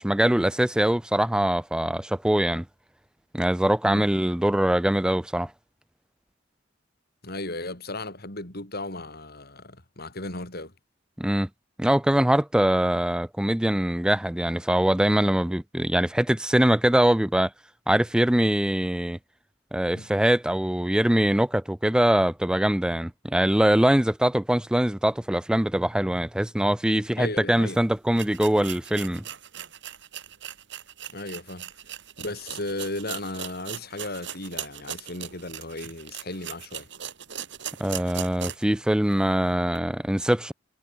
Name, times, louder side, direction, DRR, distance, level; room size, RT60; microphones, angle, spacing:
voice 1, 0.0-2.6 3.3-5.5 11.2-11.5 11.8-17.5 17.9-19.2 19.7-29.2 37.8-40.5, right 1 dB, 5° right, 0.4 m, -23 dB
voice 2, 7.2-10.7 19.9-20.1 27.2-27.8 31.1-31.7 32.2-36.9, left 2 dB, 55° left, 6.5 m, -35 dB
sound 1, 27.6-27.7 28.1-38.8 39.1-39.2 39.7-39.8, right 10 dB, 65° right, 3.1 m, -39 dB
head